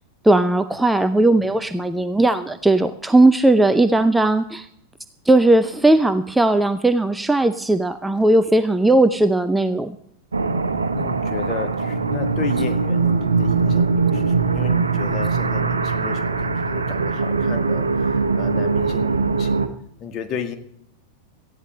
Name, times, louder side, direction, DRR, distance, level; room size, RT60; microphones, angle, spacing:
voice 1, 0.2-4.7 5.3-9.9, right 2 dB, 5° right, 0.6 m, -17 dB
sound 1, 10.3-19.7, right 4 dB, 75° right, 1.0 m, -21 dB
voice 2, 10.9-19.7 20.0-20.5, left 7 dB, 35° left, 1.7 m, -33 dB
18.5 x 13.5 x 3.2 m
figure-of-eight pair, 90°, 0 cm